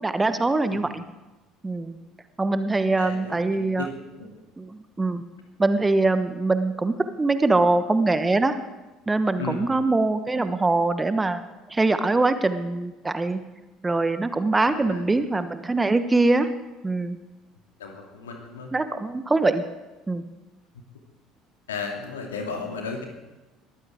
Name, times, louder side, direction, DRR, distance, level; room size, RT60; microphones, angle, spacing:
voice 1, 0.0-1.0 1.6-2.0 2.4-3.9 4.6-5.2 5.6-8.6 9.1-11.4 11.7-13.4 13.8-16.5 16.8-17.2 18.7-19.6 20.1-20.2, right 2 dB, 15° right, 11 dB, 1.1 m, -23 dB
voice 2, 3.0-3.9 4.1-4.4 9.4-9.7 14.6-15.1 17.8-18.7 20.7-20.8 21.7-23.0, left 4 dB, 75° left, 2 dB, 2.5 m, -35 dB
21.0 x 14.5 x 3.6 m, 1.1 s
figure-of-eight pair, 60°, 0 cm